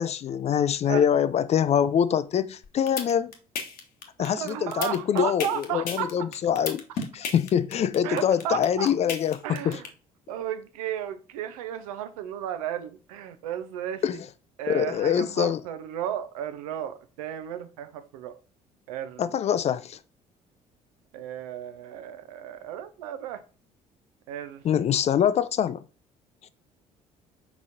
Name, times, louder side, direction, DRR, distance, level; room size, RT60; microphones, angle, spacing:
voice 1, 0.0-3.3 4.2-9.8 14.0-14.2 14.7-15.6 19.2-20.0 24.6-25.8, left 9 dB, 35° left, 0.4 m, -24 dB
sound 1, 2.6-9.9, left 5 dB, 55° left, 0.9 m, -33 dB
voice 2, 4.2-6.3 8.0-8.9 9.4-9.9 10.3-14.2 14.6-18.4 18.9-19.4 21.1-23.4 24.3-24.6, right 10 dB, 75° right, 0.5 m, -34 dB
4.7 x 3.9 x 2.6 m
figure-of-eight pair, 50°, 19 cm